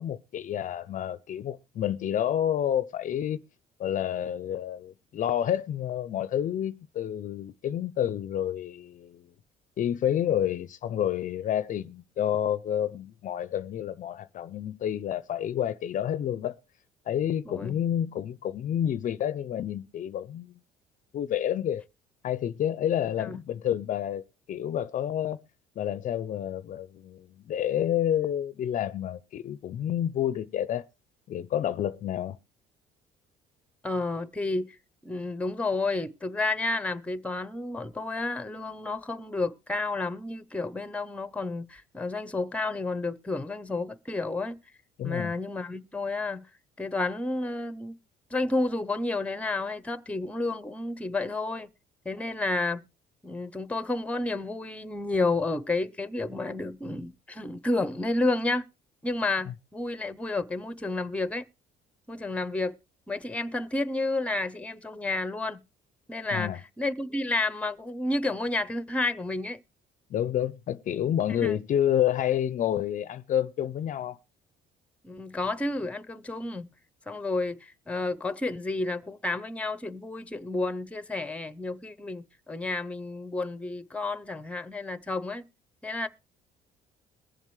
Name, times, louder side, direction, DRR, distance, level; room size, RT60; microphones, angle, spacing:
voice 1, 0.0-3.4 3.8-9.3 9.8-16.6 17.1-20.6 21.1-21.8 22.2-25.4 25.8-30.8 31.3-32.4 45.0-45.3 66.3-66.6 70.1-74.2, left 10 dB, 50° left, 0.5 m, -29 dB
voice 2, 17.5-17.8 23.2-23.4 33.8-34.8 35.0-44.6 45.0-46.5 46.8-48.0 48.3-51.7 52.0-52.8 53.2-58.7 59.0-61.5 62.1-62.8 63.1-65.6 66.1-69.6 71.3-71.6 75.0-76.7 77.1-85.4 85.8-86.1, left 2 dB, 5° left, 0.7 m, -31 dB
22.0 x 7.3 x 3.2 m
cardioid pair, 110°, 17 cm